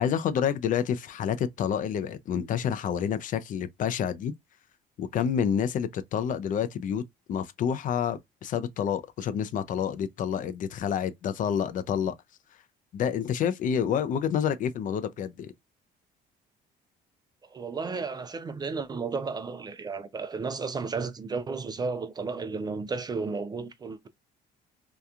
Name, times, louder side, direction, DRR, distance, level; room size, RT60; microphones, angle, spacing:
voice 1, 0.0-4.3 5.0-7.0 7.3-12.1 12.9-15.5, left 8 dB, 50° left, 0.4 m, -28 dB
voice 2, 17.4-24.1, right 4 dB, 25° right, 0.3 m, -33 dB
2.8 x 2.2 x 2.3 m
cardioid pair, 110°, 17 cm